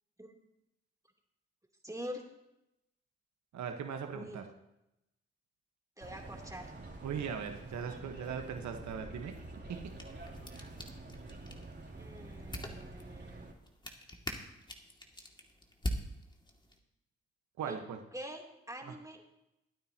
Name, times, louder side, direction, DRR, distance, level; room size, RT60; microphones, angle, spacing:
voice 1, 1.8-2.2 4.1-4.5 6.0-6.7 12.0-13.5 17.6-19.2, equal, 10° right, 0 dB, 3.1 m, -45 dB
voice 2, 3.5-4.4 7.0-9.3 9.7-9.8 17.6-18.0, right 7 dB, 70° right, 5 dB, 1.3 m, -39 dB
sound 1, 6.0-13.5, right 2 dB, 35° right, 3.3 m, -48 dB
sound 2, 9.7-16.8, equal, 15° left, 2.3 m, -44 dB
22.0 x 9.3 x 2.9 m, 0.88 s
hypercardioid pair, 40°, 29 cm